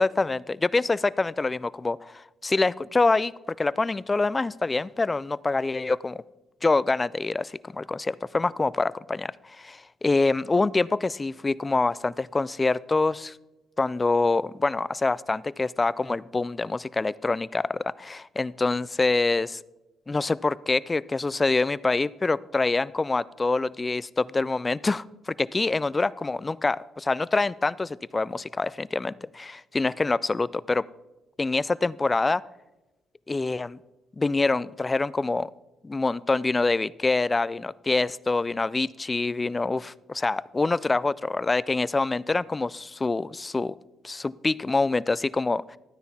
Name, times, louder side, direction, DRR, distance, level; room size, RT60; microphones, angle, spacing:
voice 1, 0.0-2.0 2.4-6.2 6.6-13.4 13.8-19.6 20.1-30.8 31.4-32.4 33.3-33.8 34.2-35.5 35.8-43.7 44.0-45.8, left 3 dB, 25° left, 20 dB, 0.3 m, -25 dB
13.0 x 9.5 x 4.2 m, 1.0 s
cardioid pair, 90°, 0 cm